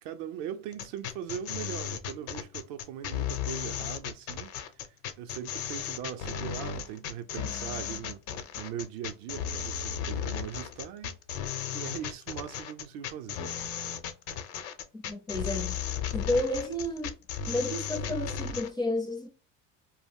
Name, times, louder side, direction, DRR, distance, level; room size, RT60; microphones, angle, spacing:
voice 1, 0.0-8.2 8.6-11.2 11.7-13.4, right 9 dB, 60° right, 0.5 m, -40 dB
sound 1, 0.7-18.7, left 8 dB, 70° left, 0.7 m, -35 dB
voice 2, 14.9-15.8 16.1-17.1 17.5-19.3, left 1 dB, 10° left, 0.4 m, -31 dB
2.2 x 2.0 x 3.5 m
supercardioid pair, 115°, 38 cm